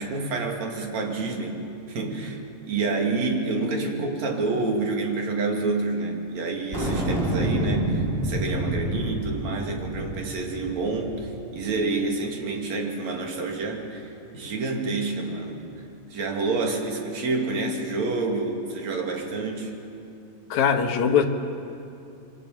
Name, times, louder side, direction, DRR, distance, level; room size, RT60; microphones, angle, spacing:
voice 1, 0.0-2.4 2.7-15.6 16.1-19.8, right 3 dB, 55° right, 2 dB, 3.5 m, -28 dB
sound 1, 6.7-11.4, right 1 dB, 15° right, 5.7 m, -28 dB
voice 2, 20.5-21.2, left 7 dB, 60° left, 4 dB, 2.6 m, -21 dB
27.5 x 23.5 x 7.4 m, 2.6 s
omnidirectional pair, 4.1 m